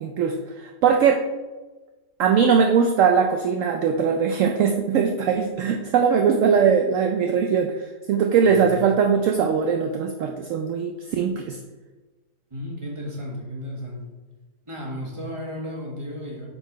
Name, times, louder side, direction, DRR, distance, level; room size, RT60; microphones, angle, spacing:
voice 1, 0.0-1.2 2.2-11.6, right 6 dB, 70° right, 4 dB, 0.8 m, -21 dB
voice 2, 8.5-8.8 12.5-14.1 14.7-16.5, left 1 dB, 20° right, -3 dB, 1.5 m, -34 dB
6.8 x 4.6 x 4.6 m, 1.2 s
omnidirectional pair, 1.8 m